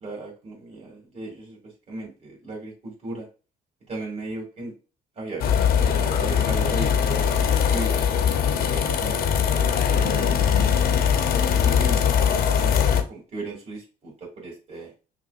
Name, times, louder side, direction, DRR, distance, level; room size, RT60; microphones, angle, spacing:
voice 1, 0.0-1.6 1.9-3.3 3.9-4.7 5.2-8.0 8.7-9.2 9.5-10.9 11.6-12.0 12.6-14.9, right 2 dB, 40° right, -2 dB, 2.3 m, -36 dB
sound 1, 5.4-13.0, left 8 dB, 65° left, 0.6 m, -21 dB
5.8 x 2.5 x 2.4 m, 0.33 s
cardioid pair, 110°, 17 cm